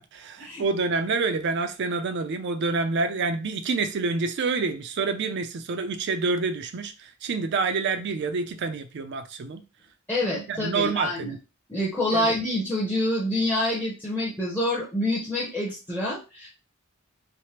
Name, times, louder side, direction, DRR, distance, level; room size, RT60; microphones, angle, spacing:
voice 1, 0.1-9.6 10.2-11.4 12.1-12.3, right 4 dB, 55° right, 0.4 m, -27 dB
voice 2, 10.1-11.3 11.7-16.5, left 1 dB, 10° left, 0.7 m, -27 dB
3.3 x 2.1 x 2.8 m
head